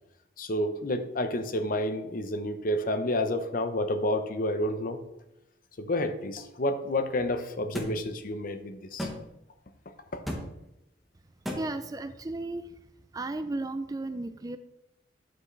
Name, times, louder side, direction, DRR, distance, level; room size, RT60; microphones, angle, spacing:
voice 1, 0.4-5.0 5.8-9.1 10.1-10.2, left 1 dB, 45° left, 8 dB, 0.7 m, -30 dB
sound 1, 7.7-7.9 9.0-9.2 10.3-10.4 11.5-11.6, equal, ahead, 1.1 m, -32 dB
voice 2, 11.6-12.7 13.1-14.6, right 2 dB, 20° right, 11 dB, 0.3 m, -34 dB
9.1 x 7.4 x 3.2 m, 0.89 s
head